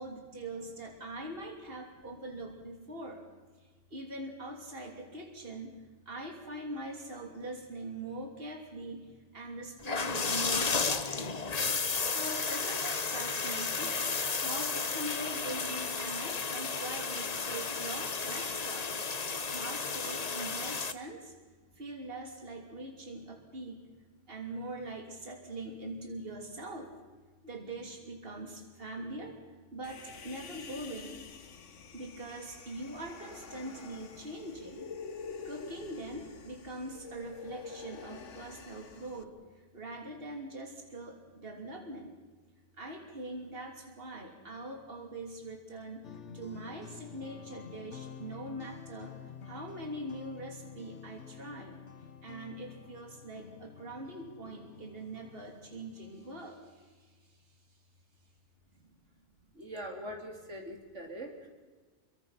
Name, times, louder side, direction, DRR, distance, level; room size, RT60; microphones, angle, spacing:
voice 1, 0.0-3.2 3.9-11.4 12.0-14.0 14.3-18.9 19.3-21.3 21.8-23.9 24.3-26.9 27.4-29.4 29.7-31.2 31.9-34.9 35.5-39.3 39.7-42.1 42.8-46.1 46.3-49.1 49.5-51.8 52.2-56.8, right 2 dB, 50° right, 2 dB, 3.4 m, -42 dB
sound 1, 9.8-20.9, left 4 dB, 35° left, 1.0 m, -33 dB
Human voice, 29.8-39.2, left 5 dB, 90° left, 1.6 m, -47 dB
sound 2, 46.0-56.5, left 7 dB, 75° left, 1.3 m, -50 dB
voice 2, 59.6-61.5, equal, 80° right, 2 dB, 3.7 m, -42 dB
28.5 x 23.5 x 5.9 m, 1.4 s
omnidirectional pair, 1.2 m